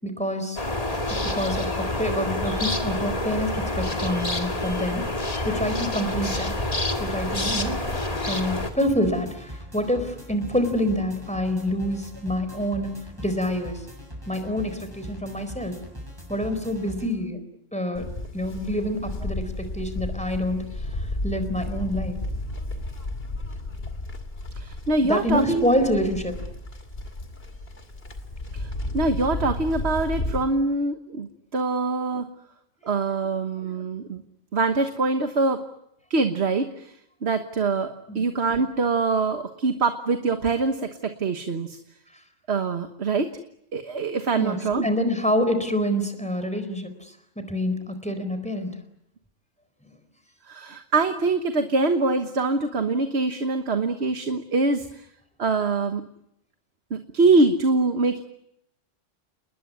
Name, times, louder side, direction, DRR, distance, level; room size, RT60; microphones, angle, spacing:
voice 1, 0.0-0.6 1.1-5.0 5.4-6.5 7.0-7.7 8.3-13.8 14.3-15.8 16.3-17.4 17.7-18.1 18.3-20.7 21.0-22.2 25.0-26.3 38.1-38.2 44.3-44.6 44.8-48.7, equal, 5° left, 9 dB, 4.2 m, -27 dB
sound 1, 0.6-8.7, left 1 dB, 30° left, 2.2 m, -27 dB
sound 2, 6.2-17.1, equal, 15° right, 7.3 m, -41 dB
Livestock farm animals working animals, 17.9-30.4, left 2 dB, 50° left, 2.8 m, -33 dB
voice 2, 24.5-25.7 28.5-32.2 32.8-34.2 34.5-35.6 36.1-36.9 37.2-41.8 42.5-43.3 43.7-44.9 50.5-55.1 55.4-56.0 56.9-58.2, right 3 dB, 60° right, 7 dB, 1.6 m, -24 dB
29.5 x 20.5 x 9.6 m, 0.81 s
omnidirectional pair, 1.3 m